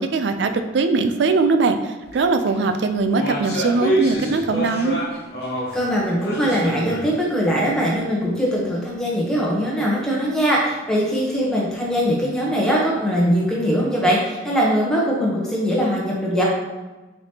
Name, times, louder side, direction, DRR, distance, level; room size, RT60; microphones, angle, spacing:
voice 1, 0.0-5.0, right 3 dB, 65° right, 8 dB, 0.4 m, -21 dB
sound 1, 2.0-2.2 2.5-5.8 6.2-7.1 7.4-7.5 8.2-8.3, right 1 dB, 55° left, 1.0 m, -26 dB
voice 2, 5.7-16.4, equal, 5° left, -5 dB, 0.8 m, -21 dB
4.8 x 3.4 x 2.8 m, 1.2 s
head